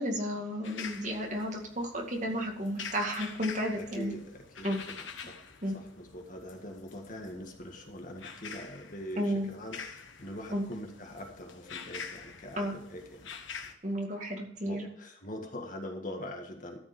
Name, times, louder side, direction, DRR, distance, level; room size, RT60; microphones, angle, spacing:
voice 1, 0.0-4.1 4.6-4.8 5.6-5.7 9.2-9.5 10.5-10.6 12.6-12.7 13.8-14.9, equal, 40° right, 1 dB, 2.2 m, -32 dB
sound 1, 0.6-13.7, left 6 dB, 75° left, 1.4 m, -46 dB
voice 2, 3.8-5.4 5.7-13.4 14.6-16.8, left 1 dB, 40° left, 2 dB, 1.8 m, -43 dB
13.5 x 5.2 x 7.0 m, 0.69 s
head